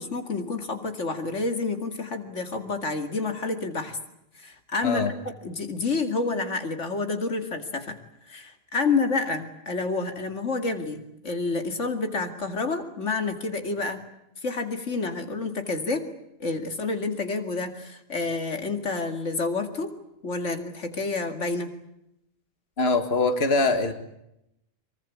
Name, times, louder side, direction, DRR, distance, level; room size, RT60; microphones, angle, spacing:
voice 1, 0.0-4.0 4.3-5.1 5.4-8.0 8.3-14.0 14.4-16.1 16.4-19.9 20.2-21.7, left 3 dB, 90° left, 7 dB, 2.7 m, -29 dB
voice 2, 4.8-5.1 22.8-23.9, left 3 dB, 60° left, 8 dB, 2.1 m, -23 dB
24.0 x 23.5 x 8.6 m, 0.82 s
omnidirectional pair, 1.2 m